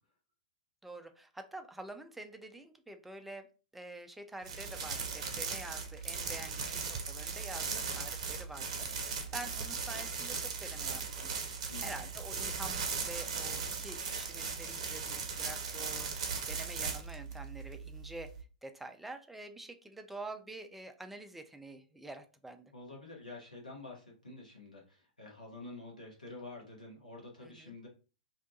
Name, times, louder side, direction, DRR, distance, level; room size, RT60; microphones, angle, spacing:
voice 1, 0.8-3.5 3.7-11.3 11.8-18.3 18.6-22.7 27.4-27.7, right 2 dB, 5° right, 6 dB, 0.3 m, -47 dB
sound 1, 4.4-18.4, right 5 dB, 55° right, 0.6 m, -38 dB
voice 2, 7.6-7.9 11.7-12.0 22.7-27.9, left 2 dB, 90° left, -2 dB, 1.0 m, -48 dB
2.7 x 2.2 x 2.6 m, 0.34 s
figure-of-eight pair, 105°, 4 cm